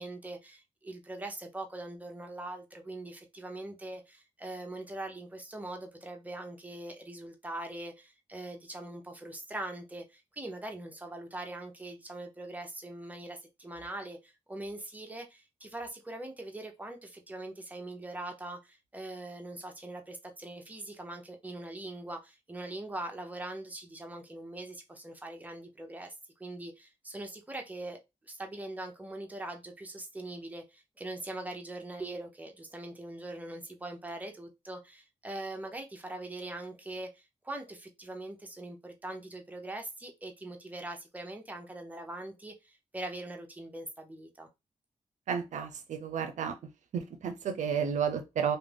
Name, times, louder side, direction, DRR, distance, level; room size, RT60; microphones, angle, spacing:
voice 1, 0.0-26.1 26.4-28.0 28.3-44.5, right 2 dB, 10° right, 0.7 m, -42 dB
voice 2, 45.3-46.6 46.9-48.6, right 7 dB, 75° right, 0.5 m, -32 dB
2.4 x 2.1 x 3.3 m
cardioid pair, 65°, 13 cm